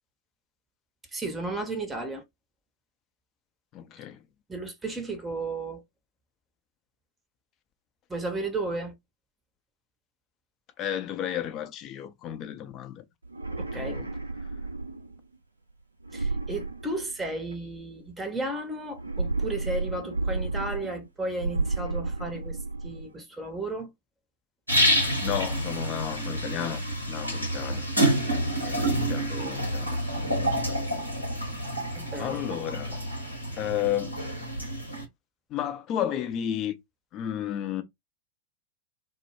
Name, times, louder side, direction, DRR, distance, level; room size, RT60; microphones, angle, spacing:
voice 1, 1.1-2.2 4.5-5.8 8.1-8.9 13.6-14.0 16.1-22.6 22.8-23.9 31.9-32.4, right 2 dB, 10° right, 0.7 m, -34 dB
voice 2, 3.7-4.2 10.8-13.0 13.5-14.1 25.2-27.9 28.3-30.0 32.2-33.0 33.6-34.2 35.5-36.8 37.1-37.8, left 10 dB, 35° left, 0.5 m, -33 dB
sound 1, 13.2-15.2 16.0-17.5 18.9-21.1 21.4-23.1, right 3 dB, 80° right, 0.4 m, -32 dB
sound 2, 24.7-35.0, right 1 dB, 90° left, 0.9 m, -28 dB
2.1 x 2.0 x 3.0 m
figure-of-eight pair, 90°, 0 cm